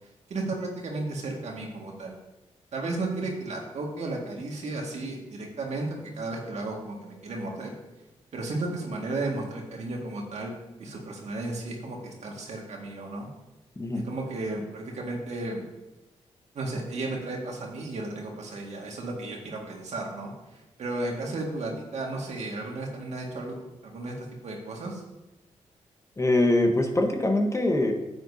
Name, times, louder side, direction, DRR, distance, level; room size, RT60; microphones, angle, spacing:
voice 1, 0.3-2.2 2.7-7.8 8.3-13.3 14.0-15.6 16.5-23.5 23.8-25.0, right 2 dB, 70° right, 0 dB, 1.9 m, -34 dB
voice 2, 26.2-27.9, left 1 dB, 25° left, 3 dB, 1.1 m, -23 dB
9.5 x 7.7 x 2.8 m, 1.0 s
cardioid pair, 60°, 12 cm